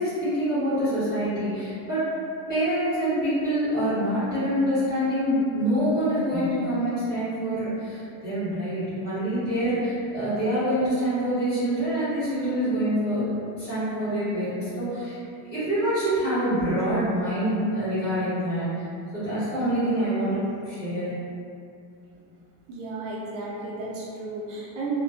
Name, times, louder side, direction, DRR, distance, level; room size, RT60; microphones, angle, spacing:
voice 1, 0.0-2.1 2.5-13.3 13.6-15.2 15.4-18.8 19.1-21.1, equal, 20° left, -17 dB, 1.4 m, -26 dB
voice 2, 22.7-25.0, right 3 dB, 45° right, -5 dB, 0.5 m, -33 dB
2.5 x 2.2 x 2.4 m, 2.5 s
cardioid pair, 170°, 49 cm